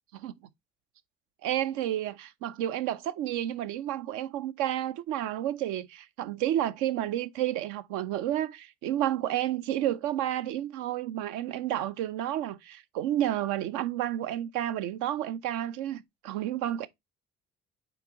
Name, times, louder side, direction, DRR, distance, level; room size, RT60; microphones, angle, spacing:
voice 1, 1.4-16.9, right 12 dB, 60° right, 0.6 m, -31 dB
8.7 x 3.0 x 3.7 m
figure-of-eight pair, 50°, 35 cm